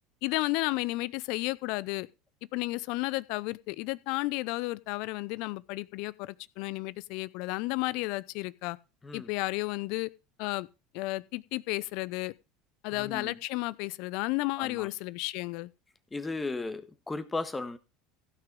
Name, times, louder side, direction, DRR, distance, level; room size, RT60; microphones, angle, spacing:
voice 1, 0.2-2.1 2.5-8.8 9.1-10.1 10.4-10.7 10.9-12.3 12.8-15.7, left 21 dB, 60° left, 0.5 m, -32 dB
voice 2, 12.9-13.4 14.6-14.9 16.1-17.8, left 3 dB, 15° left, 1.5 m, -36 dB
15.5 x 5.9 x 5.3 m
hypercardioid pair, 75°, 0 cm